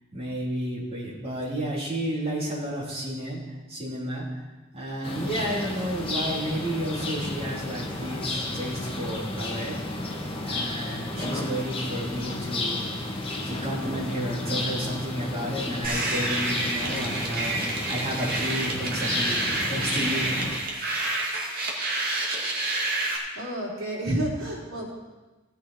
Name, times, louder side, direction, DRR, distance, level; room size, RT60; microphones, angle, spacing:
voice 1, 0.1-4.4 4.7-9.8 10.4-12.8 13.5-19.4 19.7-20.3, equal, 30° right, -5 dB, 3.3 m, -31 dB
sound 1, 5.0-20.6, left 2 dB, 25° left, 1.5 m, -32 dB
sound 2, 15.8-23.2, right 2 dB, 50° right, 2.2 m, -28 dB
voice 2, 23.3-24.9, right 1 dB, 85° right, -4 dB, 3.3 m, -30 dB
16.5 x 7.9 x 4.3 m, 1.2 s
head